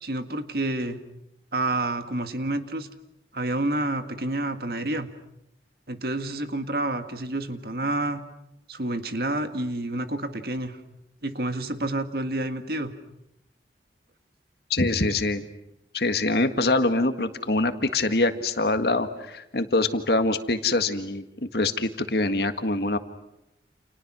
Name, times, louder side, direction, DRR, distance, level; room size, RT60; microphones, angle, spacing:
voice 1, 0.0-1.0 1.5-2.9 3.3-5.1 5.9-8.2 8.7-10.8 11.2-12.9, right 2 dB, 55° right, 8 dB, 1.8 m, -29 dB
voice 2, 14.7-15.5 15.9-23.0, left 2 dB, 60° left, 8 dB, 1.7 m, -24 dB
30.0 x 29.0 x 6.2 m, 0.85 s
head